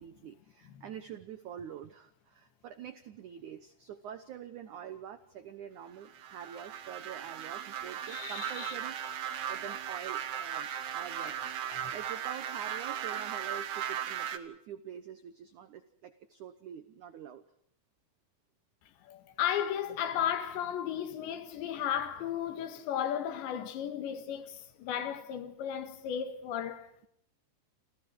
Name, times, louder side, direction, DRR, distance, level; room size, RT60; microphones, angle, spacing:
voice 1, 0.0-11.5 11.9-17.4, right 9 dB, 85° right, 1.7 m, -46 dB
sound 1, 6.0-14.4, right 9 dB, 65° right, 3.3 m, -37 dB
voice 2, 8.1-8.7 11.7-11.9 19.0-27.1, left 9 dB, 75° left, 4.2 m, -35 dB
29.0 x 27.0 x 4.7 m
omnidirectional pair, 5.2 m